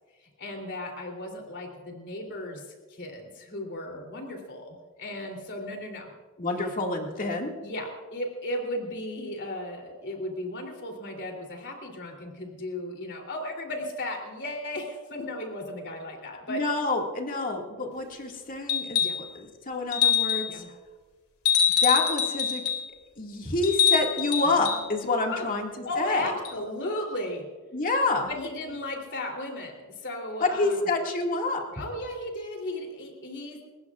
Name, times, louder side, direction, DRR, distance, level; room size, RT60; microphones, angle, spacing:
voice 1, 0.2-2.6 2.9-6.1 7.6-16.6 19.0-19.2 20.5-20.7 25.3-25.5 25.8-27.4 28.3-30.9 31.7-33.6, left 1 dB, 55° left, 2 dB, 3.2 m, -35 dB
voice 2, 6.4-7.5 16.5-20.6 21.8-22.6 23.2-25.7 26.0-26.3 27.7-28.3 30.4-31.7, left 3 dB, 40° left, 1 dB, 2.1 m, -28 dB
sound 1, 18.7-19.3 19.9-20.5 21.5-22.8 23.6-24.8 26.5-26.6, left 8 dB, 75° left, 2.6 m, -24 dB
30.0 x 15.5 x 2.4 m, 1.4 s
head